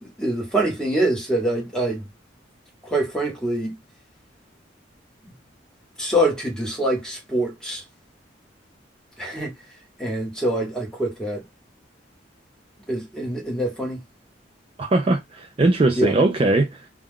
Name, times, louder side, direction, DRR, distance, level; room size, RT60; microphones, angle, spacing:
voice 1, 0.0-2.1 2.8-3.8 5.2-5.3 6.0-7.8 9.2-9.5 10.0-11.4 12.9-14.0 15.9-16.1, right 1 dB, 5° left, 1.1 m, -25 dB
voice 2, 14.8-16.9, right 2 dB, 30° right, 0.4 m, -20 dB
2.3 x 2.3 x 3.5 m
head